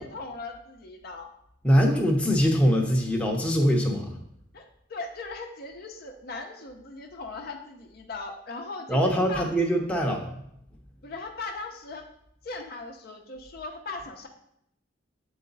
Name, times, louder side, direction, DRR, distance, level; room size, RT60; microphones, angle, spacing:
voice 1, 0.0-1.3 4.5-9.7 11.0-12.1 12.4-14.3, left 3 dB, 50° left, 4 dB, 0.6 m, -39 dB
voice 2, 1.6-4.2 8.9-10.3, equal, 5° left, 0 dB, 0.7 m, -23 dB
7.5 x 4.0 x 3.9 m, 0.75 s
head